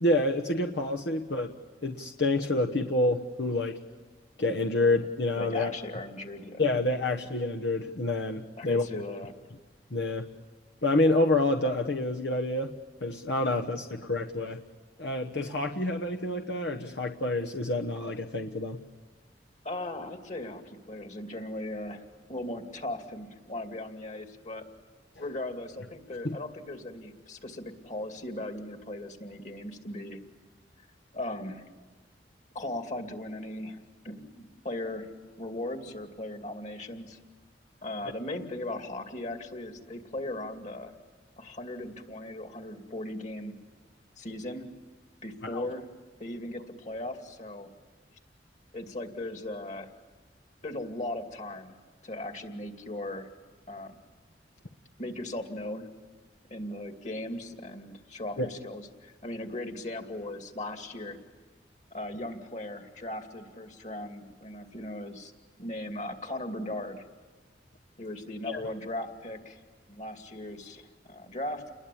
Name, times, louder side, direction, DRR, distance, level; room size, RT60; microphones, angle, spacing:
voice 1, 0.0-1.5 1.8-3.8 4.4-5.7 6.6-8.9 9.9-10.3 10.8-12.7 13.0-14.6 15.0-18.8 26.2-26.4 45.5-45.6 58.4-58.5 68.5-68.6, left 2 dB, 70° left, 2 dB, 1.2 m, -28 dB
voice 2, 5.4-6.7 8.6-9.3 19.6-24.6 25.2-30.2 31.1-31.7 32.5-35.1 35.4-37.2 37.8-41.0 41.4-43.6 44.2-44.7 45.2-45.9 46.2-47.7 48.7-49.9 50.6-51.7 52.0-53.3 53.7-54.0 55.0-55.9 56.5-61.2 61.9-65.3 65.6-67.1 68.0-69.6 69.9-71.7, left 1 dB, 40° left, 5 dB, 2.6 m, -38 dB
30.0 x 21.5 x 8.6 m, 1.3 s
head